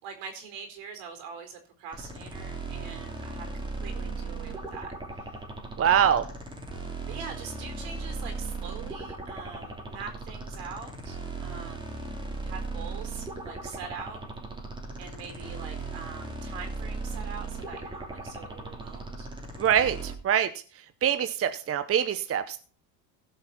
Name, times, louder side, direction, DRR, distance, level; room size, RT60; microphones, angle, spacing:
voice 1, 0.0-4.9 5.8-6.1 7.1-11.9 12.4-14.2 15.0-19.3, right 6 dB, 70° right, 6 dB, 4.2 m, -43 dB
sound 1, 1.9-20.1, right 3 dB, 10° right, 2.8 m, -37 dB
voice 2, 5.8-6.2 19.6-20.5 21.0-22.6, right 9 dB, 30° right, 11 dB, 0.8 m, -24 dB
16.5 x 5.6 x 5.9 m, 0.41 s
supercardioid pair, 105°, 48 cm